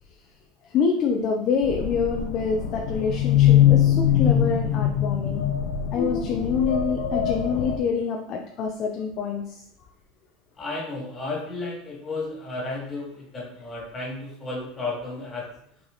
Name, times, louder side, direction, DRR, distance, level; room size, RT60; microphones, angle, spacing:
voice 1, 0.6-5.5 5.9-9.6, left 6 dB, 35° left, 2 dB, 0.6 m, -26 dB
sound 1, 1.6-7.8, left 10 dB, 65° left, 0.8 m, -22 dB
voice 2, 10.6-15.5, left 2 dB, 15° left, -4 dB, 2.5 m, -33 dB
6.3 x 4.6 x 4.0 m, 0.71 s
supercardioid pair, 170°, 0 cm